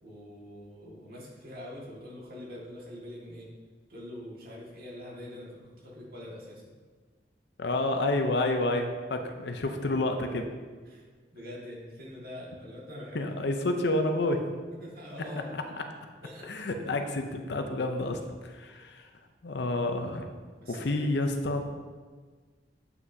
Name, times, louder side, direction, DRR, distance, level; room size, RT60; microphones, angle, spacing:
voice 1, 0.0-3.5 3.9-6.6 10.9-13.2 14.8-15.7 16.2-16.5 18.7-18.8 20.6-21.1, left 1 dB, 55° right, -5 dB, 1.8 m, -44 dB
voice 2, 7.6-10.5 13.1-14.5 15.5-15.6 16.5-19.1 19.4-20.3 20.7-21.7, left 2 dB, 70° left, 6 dB, 0.6 m, -29 dB
7.8 x 5.9 x 2.7 m, 1.5 s
head